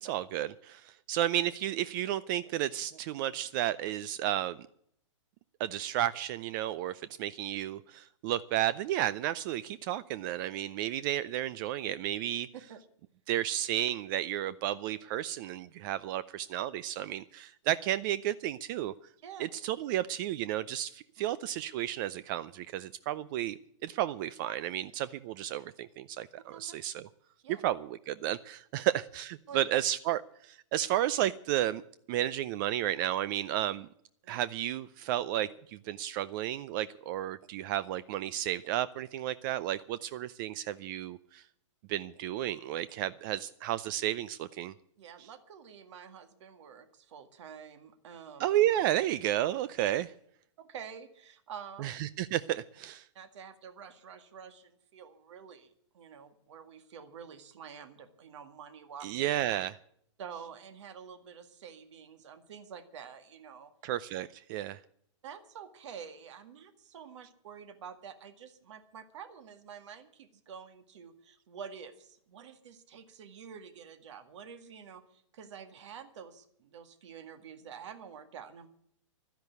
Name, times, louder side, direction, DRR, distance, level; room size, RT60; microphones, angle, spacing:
voice 1, 0.0-4.6 5.6-12.5 13.3-18.9 19.4-27.1 27.5-31.8 32.1-33.9 34.3-41.4 41.9-44.7 48.4-50.1 51.8-53.1 59.0-59.8 63.8-64.8, right 13 dB, 40° right, 17 dB, 0.5 m, -32 dB
voice 2, 45.0-48.5 50.6-51.9 53.1-59.1 60.2-63.7 65.2-78.7, right 7 dB, 65° right, 8 dB, 2.0 m, -48 dB
12.0 x 10.5 x 8.2 m, 0.66 s
hypercardioid pair, 140°, 16 cm